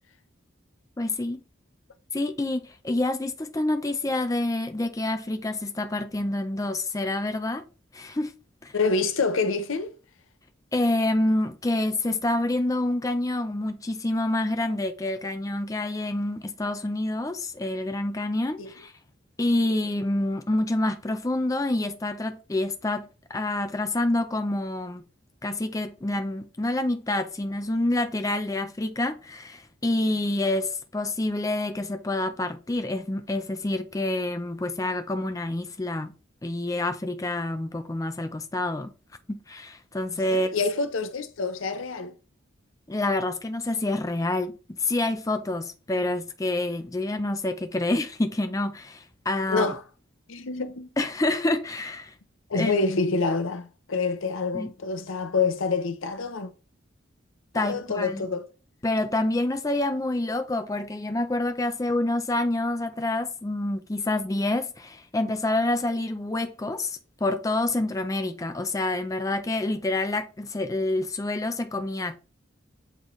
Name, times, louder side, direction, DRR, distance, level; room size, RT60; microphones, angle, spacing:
voice 1, 1.0-1.4 2.1-7.6 7.9-8.3 8.6-8.7 10.7-18.9 19.4-25.0 25.4-36.1 36.4-38.9 39.3-40.5 42.9-49.7 51.0-52.1 52.5-52.7 54.5-54.7 57.5-58.3 58.8-72.2, left 2 dB, 15° left, 0.4 m, -27 dB
voice 2, 8.7-9.9 18.6-18.7 40.3-42.1 49.5-49.8 50.3-50.9 52.5-56.5 57.5-58.5, left 4 dB, 80° left, 0.7 m, -27 dB
8.0 x 3.9 x 3.1 m
head